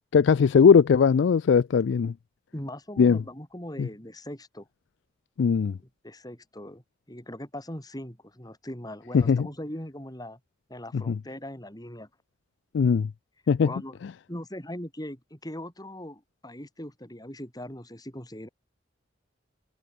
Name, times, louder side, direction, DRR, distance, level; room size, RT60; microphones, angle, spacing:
voice 1, 0.1-2.1 3.0-3.2 3.8-3.9 5.4-5.8 9.1-9.5 10.9-11.2 12.7-13.1 13.5-13.7, left 6 dB, 65° left, 0.3 m, -20 dB
voice 2, 2.5-4.7 6.0-6.8 7.1-10.4 10.7-12.1 13.6-14.0 14.3-18.5, left 1 dB, 20° left, 6.5 m, -40 dB
head